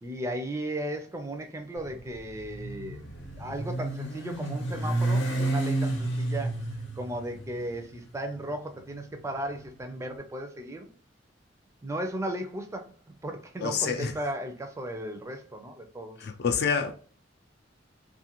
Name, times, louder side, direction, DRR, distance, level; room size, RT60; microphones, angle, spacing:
voice 1, 0.0-3.0 3.4-6.6 6.9-10.9 11.8-16.2, right 1 dB, 15° right, 0.4 m, -36 dB
Motorcycle, 1.8-10.0, right 2 dB, 85° left, 0.8 m, -31 dB
voice 2, 13.6-14.1 16.2-16.9, left 6 dB, 60° left, 0.4 m, -27 dB
2.5 x 2.4 x 2.8 m
head